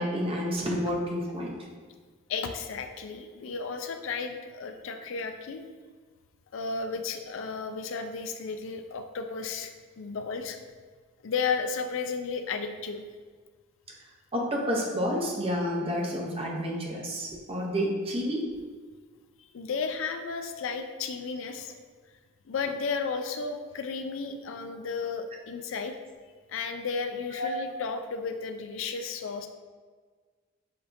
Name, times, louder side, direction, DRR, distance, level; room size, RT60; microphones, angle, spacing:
voice 1, 0.0-1.6 14.3-18.5 27.3-27.5, equal, 30° right, -2 dB, 0.7 m, -29 dB
voice 2, 2.3-5.7 6.5-10.6 11.2-13.0 19.5-21.7 22.5-25.9 26.5-29.5, left 5 dB, 70° left, 7 dB, 0.4 m, -33 dB
6.7 x 2.8 x 2.6 m, 1.5 s
head